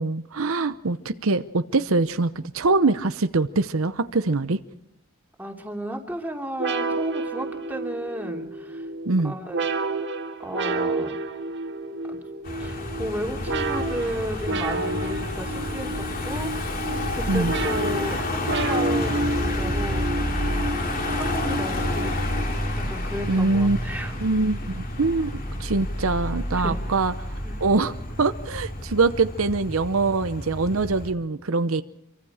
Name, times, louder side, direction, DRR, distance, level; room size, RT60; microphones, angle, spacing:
voice 1, 0.0-4.6 9.1-9.3 17.3-17.5 23.3-23.8 24.2-25.3 25.6-27.1 27.6-31.8, right 3 dB, 70° right, 11 dB, 0.8 m, -23 dB
voice 2, 5.4-8.9 9.2-9.6 10.4-11.1 12.6-16.5 17.1-20.1 21.1-24.2 26.5-26.8 27.4-27.6, equal, 10° right, 1 dB, 2.7 m, -34 dB
sound 1, 6.6-22.8, right 2 dB, 55° right, 1.7 m, -30 dB
Car passing by / Engine, 12.4-31.1, left 1 dB, 40° left, 3.1 m, -30 dB
26.5 x 23.5 x 4.9 m, 0.72 s
head